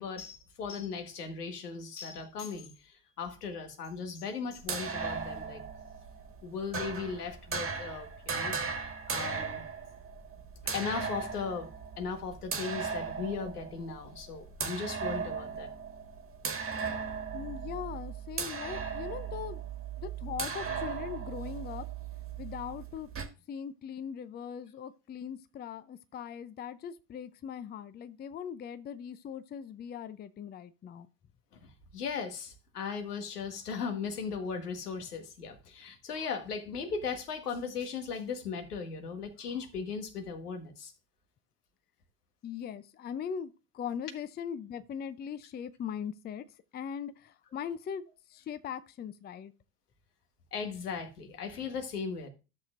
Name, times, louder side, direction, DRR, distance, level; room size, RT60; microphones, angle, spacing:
voice 1, 0.0-5.6 6.4-8.5 8.8-9.6 10.7-11.7 12.0-15.7 31.5-40.9 50.5-52.3, left 5 dB, 85° left, 1.5 m, -37 dB
sound 1, 4.6-23.2, right 6 dB, 30° right, 1.6 m, -37 dB
voice 2, 17.3-19.6 20.0-21.9 22.4-23.1 23.5-31.1 42.4-46.4 46.7-48.0 48.3-49.5, left 8 dB, 20° left, 0.5 m, -40 dB
13.5 x 6.6 x 2.5 m
hypercardioid pair, 75°, 45 cm